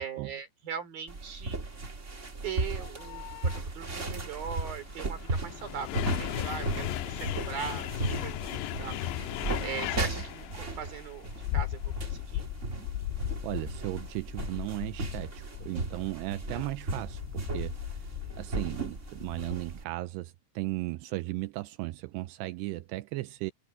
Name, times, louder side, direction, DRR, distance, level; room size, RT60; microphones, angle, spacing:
voice 1, 0.0-1.6 2.4-11.2 11.5-12.5 16.5-16.7 18.2-18.6, right 7 dB, 55° right, 4.4 m, -40 dB
sound 1, 1.1-19.8, right 2 dB, 40° right, 1.0 m, -36 dB
sound 2, 2.8-3.6 4.5-19.6, left 13 dB, 90° left, 3.1 m, -37 dB
voice 2, 13.4-18.1 18.4-23.5, right 19 dB, 85° right, 2.6 m, -36 dB
omnidirectional pair, 5.0 m